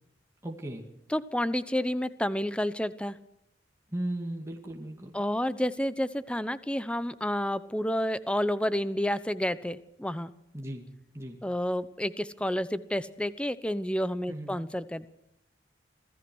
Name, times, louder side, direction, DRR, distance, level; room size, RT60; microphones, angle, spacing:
voice 1, 0.4-0.9 3.9-5.2 10.5-10.9 11.1-11.4 14.3-14.6, right 1 dB, 15° right, 1 dB, 2.3 m, -36 dB
voice 2, 1.1-3.2 5.1-10.3 11.4-15.1, left 1 dB, 5° left, 14 dB, 0.9 m, -30 dB
26.5 x 17.5 x 6.3 m, 0.81 s
head